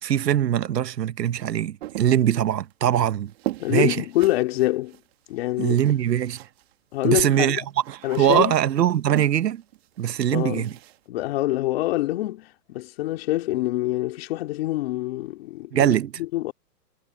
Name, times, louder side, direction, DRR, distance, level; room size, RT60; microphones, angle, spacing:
voice 1, 0.0-3.3 3.7-4.0 5.6-6.5 7.0-9.6 10.0-10.7 15.7-16.1, right 10 dB, 75° right, 1.1 m, -22 dB
sound 1, 1.8-6.7 7.0-11.0, right 16 dB, 40° right, 2.1 m, -39 dB
voice 2, 3.6-5.0 5.3-5.8 6.9-7.6 8.0-8.5 10.3-10.7 11.1-15.7 16.2-16.5, left 17 dB, 35° left, 2.9 m, -25 dB
hypercardioid pair, 160°, 49 cm